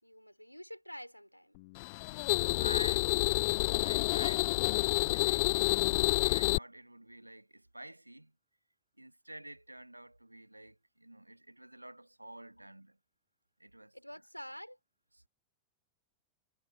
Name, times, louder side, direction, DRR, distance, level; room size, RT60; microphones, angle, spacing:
voice 1, 0.0-1.6 13.9-14.8, equal, 90° left, 4.3 m, -48 dB
sound 1, 1.8-6.6, left 25 dB, 50° left, 0.3 m, -29 dB
voice 2, 2.3-3.2 3.8-8.3 9.0-13.0 13.6-13.9 15.1-15.3, right 1 dB, 85° right, 1.4 m, -49 dB
figure-of-eight pair, 90°, 0 cm